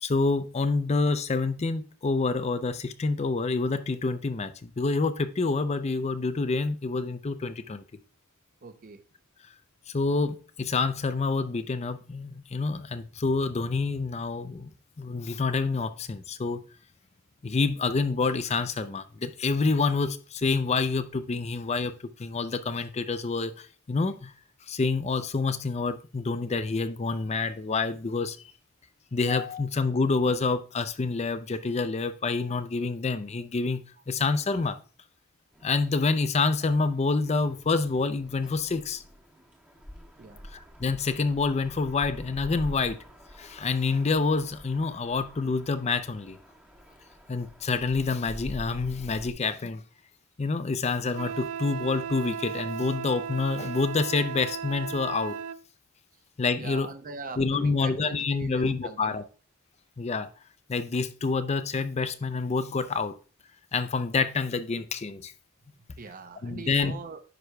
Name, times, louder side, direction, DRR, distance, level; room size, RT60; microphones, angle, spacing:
voice 1, 0.0-7.8 9.9-14.7 15.0-16.6 17.4-21.9 22.2-24.3 24.7-28.4 29.1-34.8 35.6-39.0 40.5-43.0 43.4-46.4 47.3-49.8 50.4-55.3 56.4-56.9 57.4-59.2 60.0-60.3 60.7-63.1 63.7-65.3 66.4-66.9, left 4 dB, 30° left, 0.5 m, -27 dB
voice 2, 8.6-9.0 40.2-40.5 56.6-59.2 66.0-67.2, right 3 dB, 40° right, 0.6 m, -42 dB
sound 1, 35.5-49.3, equal, 5° right, 1.3 m, -47 dB
Wind instrument woodwind instrument, 51.1-55.6, right 7 dB, 80° right, 0.4 m, -36 dB
9.9 x 6.2 x 2.2 m
head